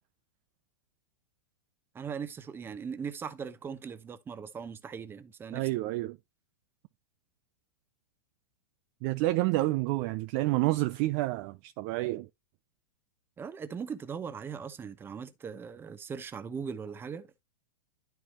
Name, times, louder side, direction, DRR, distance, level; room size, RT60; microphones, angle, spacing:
voice 1, 1.9-5.7 13.4-17.4, right 6 dB, 20° right, 0.8 m, -39 dB
voice 2, 5.5-6.2 9.0-12.3, right 18 dB, 45° right, 0.4 m, -29 dB
11.0 x 4.6 x 3.0 m
figure-of-eight pair, 100°, 12 cm